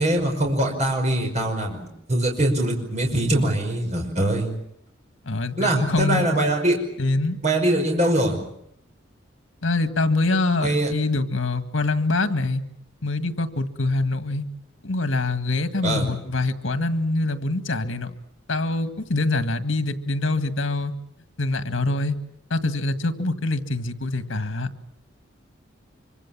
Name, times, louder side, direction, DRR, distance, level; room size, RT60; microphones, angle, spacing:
voice 1, 0.0-4.5 5.6-6.8 7.4-8.4 10.6-10.9 15.8-16.1, right 1 dB, 35° right, 1 dB, 5.6 m, -22 dB
voice 2, 5.3-6.4 7.0-7.4 9.6-12.6 13.0-14.5 14.8-18.1 18.5-20.9 21.4-22.2 22.5-24.7, left 2 dB, 85° left, 10 dB, 1.9 m, -24 dB
25.5 x 24.5 x 7.4 m, 0.73 s
head